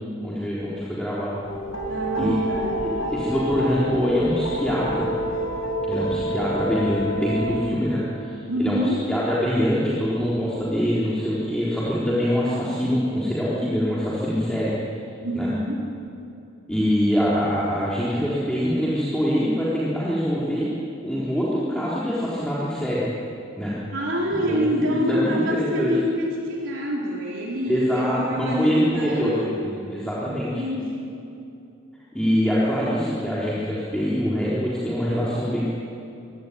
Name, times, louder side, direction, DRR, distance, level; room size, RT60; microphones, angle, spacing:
voice 1, 0.2-1.4 2.1-2.4 2.8-5.1 5.8-14.7 15.3-15.5 16.7-20.7 21.0-23.0 23.6-23.7 24.3-24.6 24.9-25.9 27.7-30.6 32.1-35.7, equal, 5° left, -8 dB, 4.0 m, -24 dB
sound 1, 1.4-7.6, right 1 dB, 85° left, 7.9 m, -28 dB
voice 2, 1.9-2.8 8.5-9.0 15.2-15.8 23.9-29.5 30.3-31.2, equal, 65° right, -3 dB, 4.4 m, -26 dB
26.5 x 17.0 x 9.6 m, 2.6 s
head